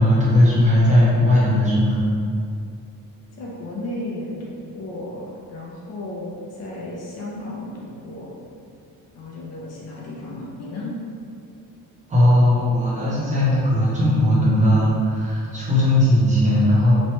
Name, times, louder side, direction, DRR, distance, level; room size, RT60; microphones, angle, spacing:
voice 1, 0.0-2.0 12.1-16.9, left 1 dB, 20° right, -8 dB, 0.5 m, -17 dB
voice 2, 3.4-8.3 9.1-10.9, left 1 dB, 45° left, -4 dB, 0.5 m, -34 dB
3.1 x 2.1 x 2.8 m, 2.4 s
cardioid pair, 175°, 36 cm